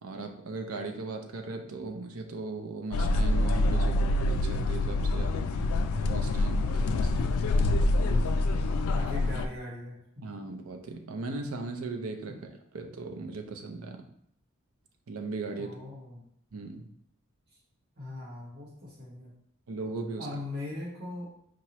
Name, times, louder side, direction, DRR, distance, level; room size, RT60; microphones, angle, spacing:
voice 1, 0.0-5.5 6.0-7.2 8.0-8.5 10.2-14.0 15.1-15.8 16.5-16.9 19.7-20.3, right 3 dB, 90° right, 4 dB, 0.6 m, -38 dB
sound 1, 2.9-9.5, left 2 dB, 85° left, 0.3 m, -26 dB
voice 2, 7.1-7.5 8.9-10.2 12.3-12.4 15.5-16.2 18.0-19.3 20.2-21.3, left 2 dB, 50° right, -4 dB, 1.4 m, -40 dB
4.6 x 2.9 x 3.0 m, 0.69 s
head